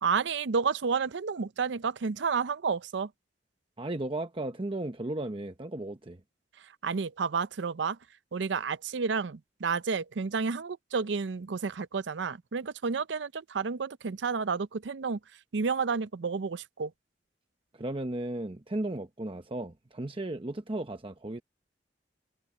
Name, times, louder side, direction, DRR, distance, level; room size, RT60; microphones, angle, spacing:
voice 1, 0.0-3.1 6.8-8.0 8.3-15.2 15.5-16.9, right 5 dB, 80° right, 0.6 m, -30 dB
voice 2, 3.8-6.2 17.7-21.4, right 1 dB, 30° right, 0.9 m, -35 dB
head